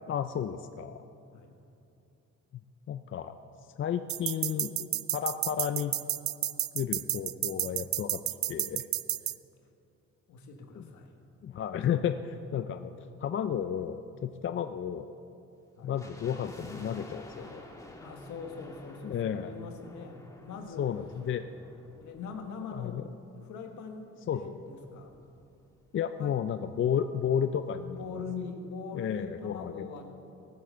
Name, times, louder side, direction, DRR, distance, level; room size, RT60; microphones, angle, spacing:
voice 1, 0.1-1.0 2.9-3.4 3.8-6.0 6.7-8.2 8.5-8.8 10.8-10.9 11.4-15.1 15.8-17.6 19.0-19.5 20.8-21.4 22.7-23.0 24.3-24.4 25.9-28.2 28.9-29.9, left 8 dB, 45° left, 9 dB, 0.5 m, -32 dB
sound 1, 4.1-9.3, right 13 dB, 50° right, 0.4 m, -31 dB
voice 2, 10.3-11.1 15.8-16.0 18.0-20.9 22.0-23.0 23.4-25.2 26.2-26.4 27.9-30.1, left 5 dB, 75° left, 4 dB, 1.6 m, -42 dB
sound 2, 16.0-23.2 23.5-23.6 24.3-26.1 26.3-26.4 26.7-27.0 27.4-27.5, left 1 dB, 10° left, 1.8 m, -51 dB
17.5 x 7.5 x 6.8 m, 2.7 s
cardioid pair, 110°, 30 cm